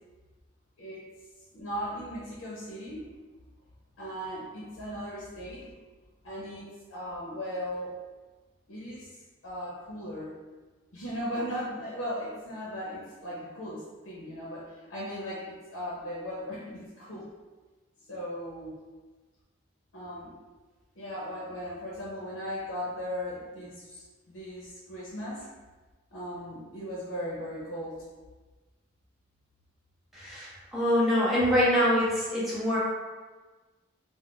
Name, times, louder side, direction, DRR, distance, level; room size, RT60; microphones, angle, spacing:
voice 1, 1.5-3.0 4.0-5.7 6.2-7.9 8.7-9.1 9.4-10.3 10.9-14.6 14.9-17.3 18.1-18.8 19.9-20.3 21.0-25.4 26.1-28.0, equal, 85° left, -6 dB, 0.7 m, -37 dB
voice 2, 30.1-32.8, equal, ahead, -9 dB, 0.7 m, -25 dB
2.4 x 2.1 x 3.7 m, 1.3 s
head